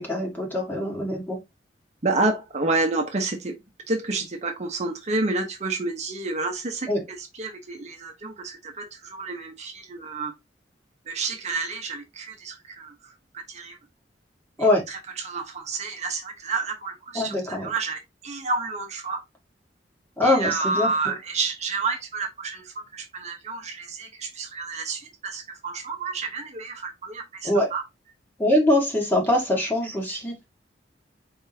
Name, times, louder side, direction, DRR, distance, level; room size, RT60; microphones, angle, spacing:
voice 1, 0.0-1.4 6.9-7.0 14.6-14.8 17.1-17.7 20.2-20.9 27.4-27.7 28.4-30.3, left 1 dB, 10° left, 1.6 m, -23 dB
voice 2, 2.0-3.5 3.9-10.3 11.1-12.9 13.5-13.8 14.6-19.2 20.2-27.8, right 3 dB, 40° right, 0.8 m, -30 dB
4.6 x 3.6 x 2.7 m
head